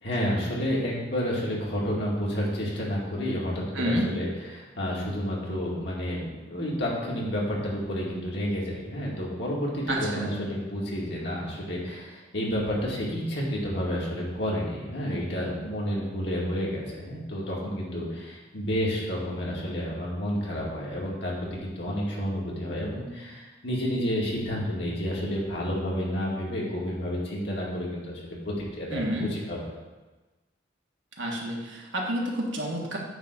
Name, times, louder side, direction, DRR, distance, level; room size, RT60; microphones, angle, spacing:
voice 1, 0.0-4.3 4.5-29.6, equal, 65° left, -4 dB, 2.2 m, -30 dB
voice 2, 3.7-4.1 9.9-10.3 28.9-29.3 31.2-33.0, equal, 85° right, -2 dB, 1.7 m, -29 dB
9.0 x 3.6 x 6.6 m, 1.2 s
head